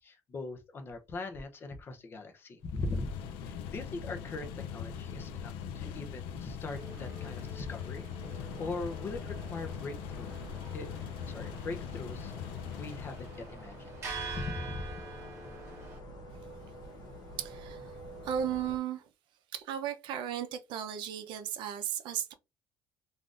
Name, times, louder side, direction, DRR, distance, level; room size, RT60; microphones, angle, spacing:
voice 1, 0.0-3.1 3.4-8.1 8.3-10.3 10.7-10.9 11.3-12.3 12.8-15.0, left 3 dB, 25° left, 0.6 m, -40 dB
sound 1, 2.6-13.5, left 8 dB, 90° left, 0.4 m, -41 dB
sound 2, 6.7-16.0, right 4 dB, 30° right, 0.9 m, -47 dB
sound 3, 8.2-18.8, equal, 45° left, 0.9 m, -48 dB
voice 2, 17.4-17.9 18.2-19.0 19.5-22.3, right 9 dB, 65° right, 0.6 m, -35 dB
3.6 x 2.5 x 2.4 m
cardioid pair, 170°, 9 cm